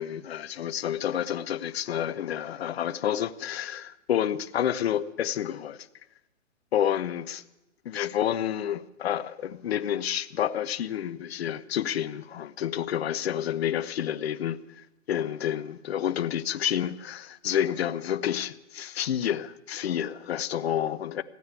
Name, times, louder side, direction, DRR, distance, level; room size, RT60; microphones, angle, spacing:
voice 1, 0.0-5.9 6.7-7.4 7.9-21.2, left 10 dB, 55° left, 0.8 m, -29 dB
16.0 x 9.4 x 8.3 m
hypercardioid pair, 155°, 37 cm